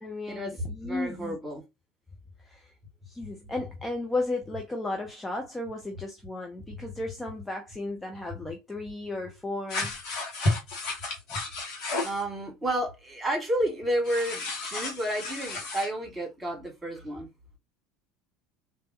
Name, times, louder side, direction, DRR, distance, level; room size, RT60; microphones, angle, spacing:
voice 1, 0.0-1.4 2.4-2.7 3.1-10.0, left 2 dB, 10° left, 0.6 m, -34 dB
voice 2, 0.8-1.6 12.0-17.3, right 1 dB, 15° right, 2.1 m, -31 dB
sound 1, 9.7-12.2 14.0-15.9, left 2 dB, 50° left, 1.4 m, -32 dB
3.3 x 2.6 x 2.9 m
figure-of-eight pair, 70°, 0 cm